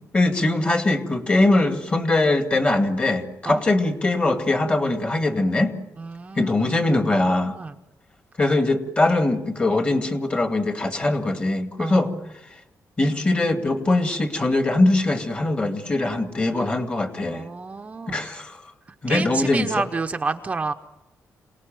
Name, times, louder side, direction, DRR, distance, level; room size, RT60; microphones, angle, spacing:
voice 1, 0.1-5.7 6.4-7.5 8.4-12.1 13.0-17.5 18.1-18.6 19.0-19.9, left 2 dB, 20° left, 7 dB, 2.2 m, -21 dB
voice 2, 6.0-6.7 7.5-7.7 11.8-12.1 17.2-18.2 19.1-20.7, right 4 dB, 25° right, 6 dB, 0.8 m, -29 dB
27.5 x 19.0 x 9.2 m, 0.96 s
wide cardioid pair, 170°, 6 cm